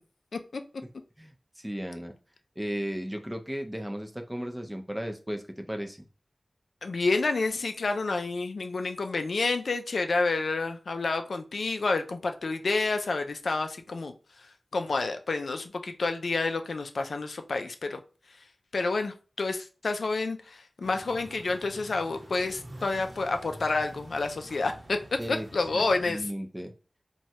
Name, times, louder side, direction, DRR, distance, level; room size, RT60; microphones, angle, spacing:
voice 1, 1.2-2.2 2.6-6.1 25.2-25.5 25.7-26.7, equal, 10° right, 5 dB, 0.4 m, -35 dB
voice 2, 6.8-14.1 14.7-18.0 18.7-25.0 25.3-26.3, left 3 dB, 90° left, 6 dB, 0.3 m, -29 dB
sound 1, 20.8-26.2, right 1 dB, 60° right, 0.8 m, -47 dB
3.0 x 2.2 x 2.7 m, 0.35 s
wide cardioid pair, 80°, 0 cm